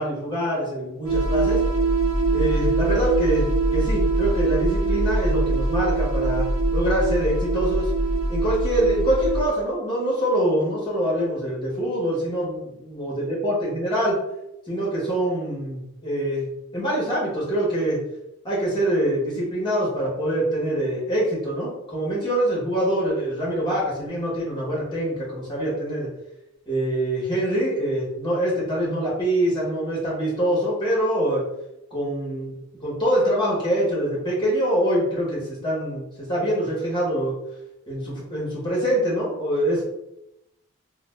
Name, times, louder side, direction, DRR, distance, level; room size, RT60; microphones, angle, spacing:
voice 1, 0.0-1.6 2.3-6.5 6.7-7.9 8.3-14.1 14.7-16.5 16.7-18.0 18.4-26.1 26.7-31.4 31.9-32.5 32.8-37.3 37.9-39.8, right 1 dB, 20° left, -5 dB, 1.1 m, -24 dB
sound 1, 1.1-9.5, right 2 dB, 65° right, 0.6 m, -22 dB
2.6 x 2.1 x 3.2 m, 0.87 s
head